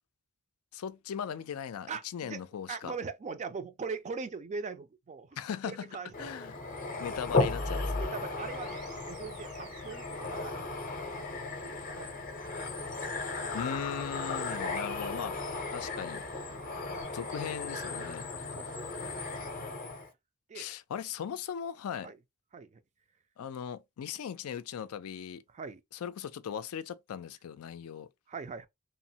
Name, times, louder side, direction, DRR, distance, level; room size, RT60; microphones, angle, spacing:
voice 1, 0.7-3.0 5.4-6.6 7.0-8.1 13.5-16.2 17.1-18.3 20.5-22.1 23.4-25.4 26.0-28.1, left 8 dB, 80° left, 0.4 m, -39 dB
voice 2, 1.9-2.4 2.7-5.4 5.7-6.3 8.0-10.5 11.6-12.2 16.4-16.7 18.3-18.8 19.2-19.4 20.5-20.7 22.0-22.2 22.5-22.8 25.5-25.8 28.3-28.7, right 5 dB, 35° right, 0.3 m, -41 dB
sound 1, 6.1-20.1, left 3 dB, 40° left, 0.6 m, -36 dB
sound 2, 7.0-17.0, left 1 dB, 85° right, 1.1 m, -45 dB
3.0 x 2.0 x 2.7 m
head